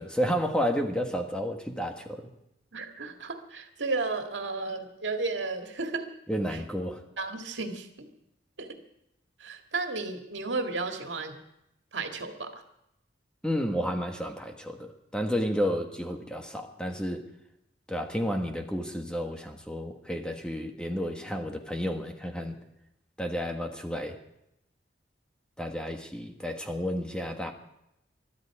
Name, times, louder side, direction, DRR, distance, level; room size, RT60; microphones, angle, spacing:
voice 1, 0.0-2.3 6.3-7.0 13.4-17.2 17.9-22.5 23.2-24.2 25.6-27.5, equal, 5° left, 3 dB, 1.4 m, -31 dB
voice 2, 2.7-6.1 6.5-6.6 7.2-8.1 8.6-8.8 9.4-11.4 11.9-12.6, right 3 dB, 85° right, 4 dB, 2.0 m, -33 dB
22.0 x 12.5 x 4.8 m, 0.82 s
head